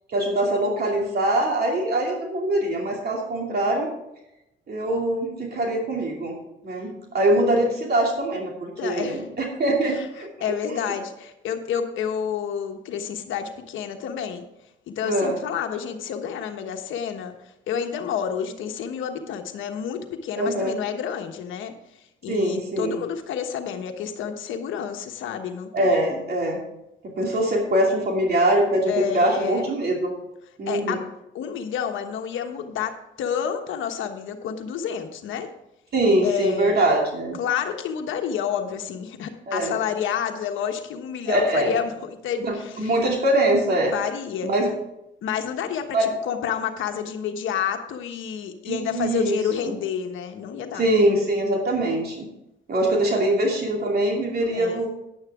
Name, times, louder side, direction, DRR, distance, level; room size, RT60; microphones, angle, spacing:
voice 1, 0.1-3.9 4.7-6.4 6.6-10.9 15.0-15.4 20.4-20.8 22.3-23.0 25.7-26.6 27.0-30.1 30.6-31.0 35.9-37.4 39.5-39.8 41.3-41.8 42.4-43.9 44.4-44.7 45.9-46.1 48.6-49.7 50.7-52.3 52.7-54.9, right 1 dB, 50° right, 0 dB, 2.7 m, -23 dB
voice 2, 8.8-9.2 10.0-10.1 10.4-14.4 14.9-17.3 17.7-21.7 22.2-26.1 28.9-29.6 30.7-31.0 31.3-35.5 36.2-36.8 37.4-43.0 43.9-44.5 45.2-50.8 54.5-54.9, left 8 dB, 80° left, 5 dB, 1.2 m, -29 dB
10.5 x 10.5 x 3.6 m, 0.88 s
cardioid pair, 90°, 20 cm